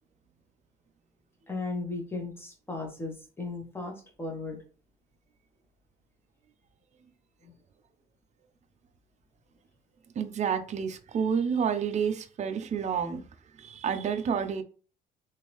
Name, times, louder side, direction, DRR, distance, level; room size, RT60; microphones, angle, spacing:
voice 1, 1.5-4.6 7.4-7.5, left 3 dB, 10° left, 2 dB, 1.1 m, -36 dB
voice 2, 10.2-13.3 13.6-14.6, right 7 dB, 35° right, 8 dB, 0.5 m, -29 dB
3.6 x 2.6 x 3.0 m, 0.38 s
cardioid pair, 120°, 20 cm